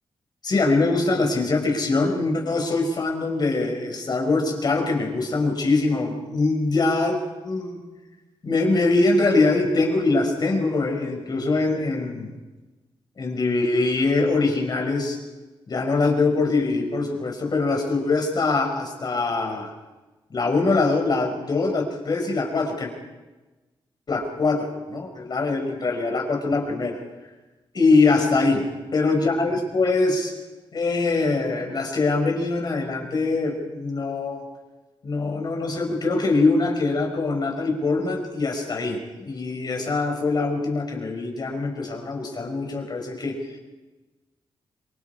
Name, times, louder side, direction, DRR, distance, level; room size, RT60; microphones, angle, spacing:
voice 1, 0.4-7.8 8.4-12.3 13.2-15.2 15.7-19.7 20.3-22.9 24.1-27.0 27.7-30.3 30.7-34.4 35.0-43.4, left 3 dB, 50° left, 3 dB, 5.8 m, -23 dB
27.5 x 23.5 x 4.9 m, 1.2 s
cardioid pair, 90°, 9 cm